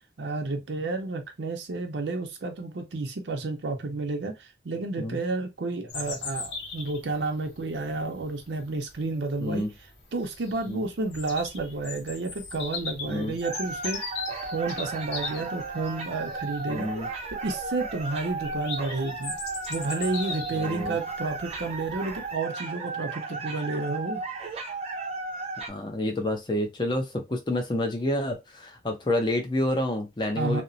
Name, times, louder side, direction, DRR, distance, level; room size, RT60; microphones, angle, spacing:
voice 1, 0.2-9.7 10.1-16.9 17.3-19.4 19.7-24.2 30.4-30.6, right 3 dB, 85° right, 0.6 m, -31 dB
Bird vocalization bird call bird song, 5.9-22.3, left 4 dB, 75° left, 0.7 m, -40 dB
sound 1, 13.4-25.7, right 3 dB, 35° right, 0.5 m, -35 dB
voice 2, 16.7-17.1 20.6-21.0 25.7-30.6, left 1 dB, 25° left, 0.5 m, -29 dB
2.9 x 2.0 x 2.5 m
head